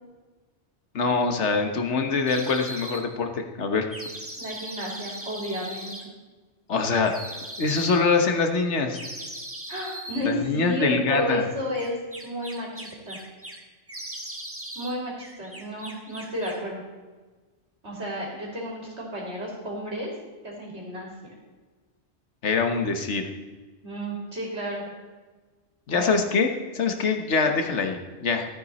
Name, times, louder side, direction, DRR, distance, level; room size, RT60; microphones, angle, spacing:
voice 1, 0.9-3.9 6.7-7.1 7.6-9.0 10.2-11.4 22.4-23.2 25.9-28.5, left 4 dB, 75° left, 5 dB, 1.5 m, -24 dB
sound 1, 2.3-3.0 3.9-6.0 7.0-8.0 8.9-10.3 11.7-13.6 13.9-14.9 15.2-16.7, right 1 dB, 10° right, 1.3 m, -39 dB
voice 2, 4.4-6.1 9.7-12.0 12.2-13.2 14.8-16.8 17.8-20.1 20.4-21.3 23.8-24.9 25.9-26.2, equal, 70° right, -3 dB, 3.7 m, -32 dB
14.0 x 9.1 x 4.2 m, 1.3 s
omnidirectional pair, 1.2 m